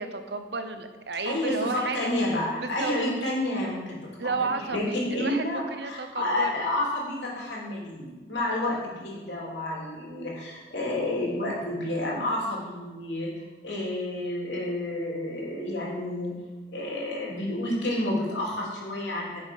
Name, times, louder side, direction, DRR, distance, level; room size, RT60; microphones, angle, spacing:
voice 1, 0.0-2.1 2.6-2.9 4.2-6.5, right 4 dB, 65° right, 8 dB, 0.9 m, -32 dB
voice 2, 1.3-13.3 13.6-16.4 16.7-19.4, left 1 dB, 80° left, -4 dB, 3.5 m, -30 dB
10.5 x 6.9 x 5.5 m, 1.2 s
head